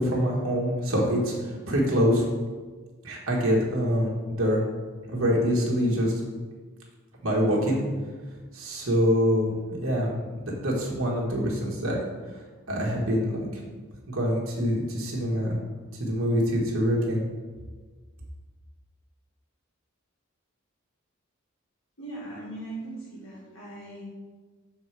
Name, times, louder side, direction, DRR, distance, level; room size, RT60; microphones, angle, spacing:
voice 1, 0.0-2.3 3.0-4.1 4.4-4.6 5.1-6.1 7.2-7.8 8.5-10.2 10.6-12.1 12.7-13.6 14.1-15.6 16.0-17.3, equal, 75° right, -3 dB, 1.4 m, -25 dB
voice 2, 22.0-24.0, right 2 dB, 65° left, -5 dB, 1.9 m, -39 dB
7.3 x 3.8 x 4.7 m, 1.4 s
head